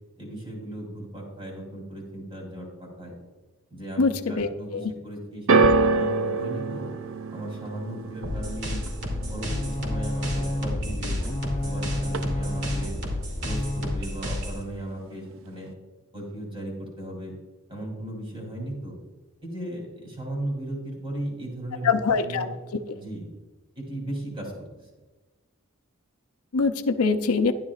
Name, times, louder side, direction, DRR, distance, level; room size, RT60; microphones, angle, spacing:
voice 1, 0.2-3.2 3.7-6.9 7.3-8.8 9.3-11.2 11.5-13.0 13.4-15.7 16.1-17.3 17.7-19.0 19.4-22.5 22.9-23.3 23.7-24.9, right 1 dB, 25° right, -1 dB, 3.1 m, -36 dB
voice 2, 4.4-4.8 21.8-22.5 26.5-27.5, left 4 dB, 90° left, 9 dB, 0.6 m, -23 dB
sound 1, 5.5-11.8 12.0-12.7 13.4-13.5, right 3 dB, 65° right, 0.5 m, -27 dB
sound 2, 8.2-14.6, left 1 dB, 50° right, 2.6 m, -31 dB
sound 3, 9.1-14.0, left 1 dB, 30° left, 0.9 m, -32 dB
12.5 x 10.5 x 2.4 m, 1.2 s
head